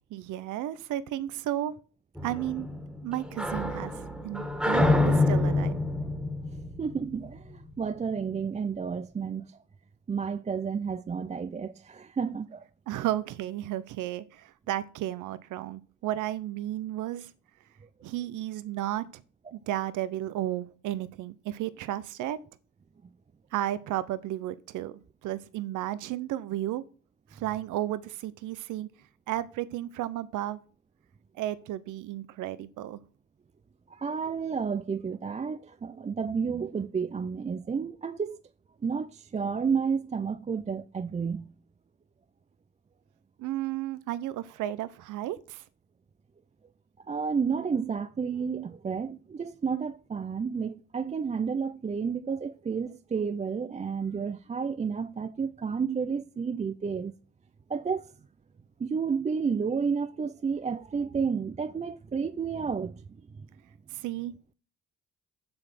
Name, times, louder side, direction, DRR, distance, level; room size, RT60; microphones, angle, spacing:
voice 1, 0.1-1.7 2.2-2.7 3.0-3.9 4.2-5.8 12.9-17.3 18.0-19.1 19.5-22.4 23.5-26.8 27.3-28.9 29.3-30.6 31.3-33.0 43.4-45.6 63.9-64.3, right 13 dB, 85° right, 0.7 m, -33 dB
sound 1, 2.2-7.6, left 2 dB, 5° right, 1.9 m, -27 dB
voice 2, 6.5-9.6 10.1-12.7 19.5-19.6 33.9-38.4 38.8-41.5 47.1-57.1 57.7-58.1 58.8-63.0 63.3-63.5, right 6 dB, 25° right, 0.4 m, -31 dB
7.7 x 5.9 x 7.5 m
cardioid pair, 90°, 30 cm